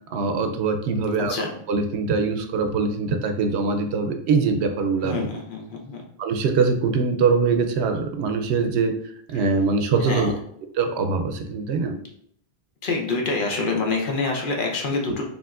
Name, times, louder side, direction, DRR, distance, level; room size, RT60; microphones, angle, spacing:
voice 1, 0.1-1.3 1.7-5.3 6.2-8.9 9.3-10.3 10.7-12.0, right 4 dB, 85° right, 6 dB, 0.8 m, -23 dB
voice 2, 5.0-6.0 10.0-10.3 12.8-15.2, left 3 dB, 55° left, 0 dB, 0.9 m, -26 dB
5.0 x 2.8 x 2.4 m, 0.67 s
omnidirectional pair, 1.1 m